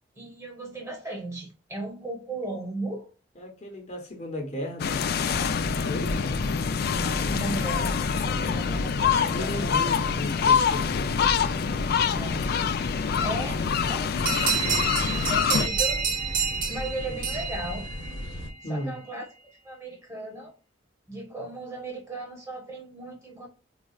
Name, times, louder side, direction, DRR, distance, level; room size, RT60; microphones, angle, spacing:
voice 1, 0.1-3.1 6.8-9.5 12.1-12.5 13.2-14.6 15.2-16.1 16.7-17.9 18.6-19.3 19.6-20.5 21.1-23.5, right 2 dB, 15° right, 1.1 m, -36 dB
voice 2, 3.4-5.0 5.8-6.3 9.3-11.1 18.6-18.9, left 1 dB, 40° left, 0.9 m, -35 dB
sound 1, 4.8-15.7, left 7 dB, 55° left, 0.3 m, -26 dB
sound 2, 5.3-18.5, left 1 dB, 75° left, 0.9 m, -35 dB
sound 3, 14.3-18.5, right 6 dB, 45° right, 0.9 m, -29 dB
4.0 x 2.4 x 2.3 m
head